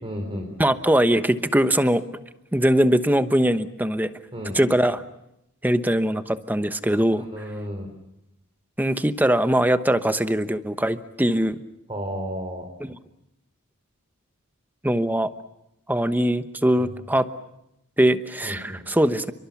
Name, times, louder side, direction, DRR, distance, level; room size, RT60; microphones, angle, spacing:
voice 1, 0.0-0.5 4.3-4.6 7.1-7.9 11.9-12.7 16.8-16.9 18.4-18.8, equal, 25° right, 2 dB, 3.9 m, -33 dB
voice 2, 0.6-2.0 2.5-4.1 4.5-5.0 5.6-7.2 8.8-11.6 14.8-15.3 15.9-17.3 18.0-19.3, right 1 dB, 10° right, 11 dB, 1.0 m, -21 dB
29.5 x 23.5 x 7.1 m, 0.84 s
head